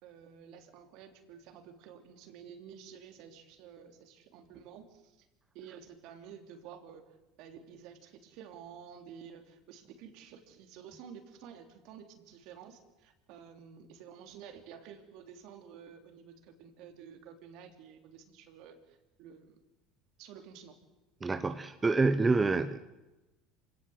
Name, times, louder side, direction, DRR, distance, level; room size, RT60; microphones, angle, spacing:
voice 1, 0.0-5.3 5.5-19.6 20.2-20.8 21.3-21.6, right 8 dB, 65° right, 6 dB, 3.2 m, -51 dB
voice 2, 21.2-22.8, right 3 dB, 20° right, 10 dB, 1.1 m, -27 dB
26.5 x 17.5 x 8.0 m, 1.0 s
hypercardioid pair, 80°, 0 cm